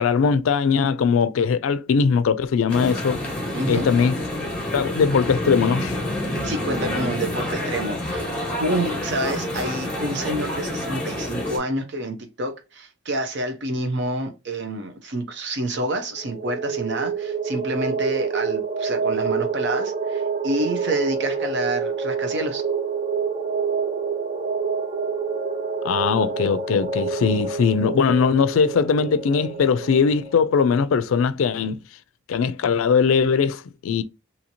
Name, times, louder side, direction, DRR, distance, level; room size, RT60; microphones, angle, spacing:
voice 1, 0.0-3.2 3.7-4.2 4.7-6.0 25.8-31.8 32.3-34.0, left 5 dB, 85° left, 0.4 m, -20 dB
sound 1, 2.7-11.6, left 1 dB, 5° left, 1.1 m, -28 dB
voice 2, 3.5-3.9 6.4-22.6, right 1 dB, 60° right, 0.7 m, -28 dB
sound 2, 16.1-30.5, right 5 dB, 30° right, 0.4 m, -27 dB
2.8 x 2.8 x 2.6 m
head